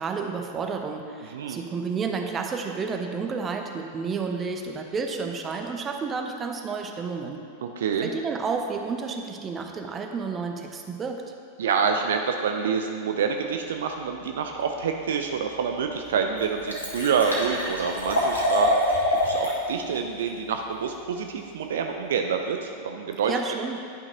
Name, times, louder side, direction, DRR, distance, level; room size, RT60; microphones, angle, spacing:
voice 1, 0.0-7.5 8.0-11.3 23.3-23.8, right 5 dB, 25° right, 3 dB, 0.7 m, -31 dB
voice 2, 7.6-8.1 11.6-19.0 19.2-23.3, right 6 dB, 60° right, 4 dB, 0.5 m, -27 dB
Liquid, 15.5-15.6 16.1-16.2 16.4-19.6 19.9-20.0, left 1 dB, 75° left, 1.5 m, -25 dB
10.5 x 5.8 x 3.9 m, 2.6 s
figure-of-eight pair, 90°, 0 cm